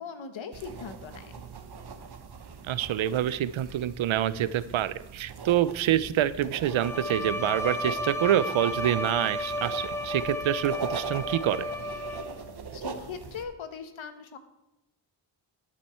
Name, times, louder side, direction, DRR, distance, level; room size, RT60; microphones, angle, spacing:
voice 1, 0.0-1.3 12.7-14.4, left 6 dB, 80° left, 8 dB, 1.2 m, -40 dB
sound 1, 0.5-13.4, right 6 dB, 55° right, 1.2 m, -41 dB
voice 2, 2.7-11.7, right 11 dB, 90° right, 15 dB, 0.6 m, -27 dB
Bowed string instrument, 6.7-12.5, left 1 dB, 5° left, 0.5 m, -33 dB
12.5 x 7.5 x 4.4 m, 0.90 s
wide cardioid pair, 90°, 46 cm